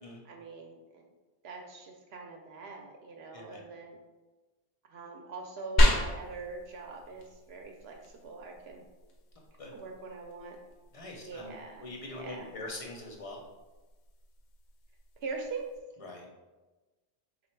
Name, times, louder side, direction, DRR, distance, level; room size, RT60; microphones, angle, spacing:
voice 1, 0.2-1.1 1.4-4.0 4.9-8.8 9.7-10.6 11.2-12.5 15.2-15.7, right 4 dB, 70° right, 1 dB, 0.8 m, -43 dB
voice 2, 3.3-3.7 9.6-9.7 10.9-13.4 16.0-16.3, left 2 dB, 40° left, 0 dB, 0.6 m, -43 dB
sound 1, 5.8-15.8, left 1 dB, 80° left, 0.9 m, -33 dB
3.6 x 2.4 x 4.4 m, 1.2 s
omnidirectional pair, 1.1 m